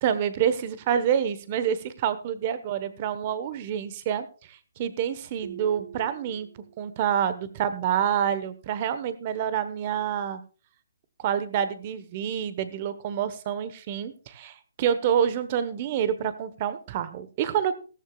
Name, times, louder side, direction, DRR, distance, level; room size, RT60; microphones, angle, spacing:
voice 1, 0.0-6.5 6.8-10.4 11.2-17.7, right 9 dB, 25° right, 13 dB, 1.1 m, -27 dB
sound 1, 5.4-7.1, right 8 dB, 55° right, 1.4 m, -44 dB
16.0 x 14.0 x 2.4 m, 0.36 s
hypercardioid pair, 170°, 0 cm